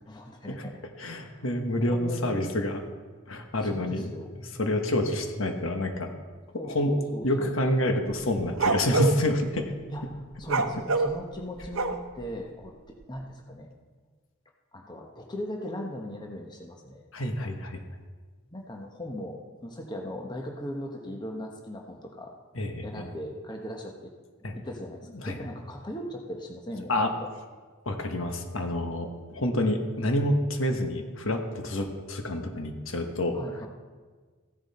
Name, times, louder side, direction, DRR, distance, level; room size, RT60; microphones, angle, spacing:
voice 1, 0.1-0.8 1.1-1.4 1.9-2.5 3.6-4.3 6.5-7.5 9.9-13.7 14.7-17.5 18.5-22.3 22.8-24.1 24.5-26.9 27.2-27.3 33.3-33.7, equal, 20° left, 1 dB, 1.1 m, -39 dB
voice 2, 1.0-2.8 3.3-4.1 4.6-6.1 6.7-6.9 7.2-9.7 17.1-17.8 22.5-23.0 24.4-24.5 25.1-25.4 26.9-27.1 27.8-33.4, left 1 dB, 70° left, 5 dB, 1.4 m, -28 dB
sound 1, 8.1-9.2 10.4-12.2, right 3 dB, 70° right, 0.8 m, -26 dB
15.0 x 10.5 x 4.3 m, 1.4 s
head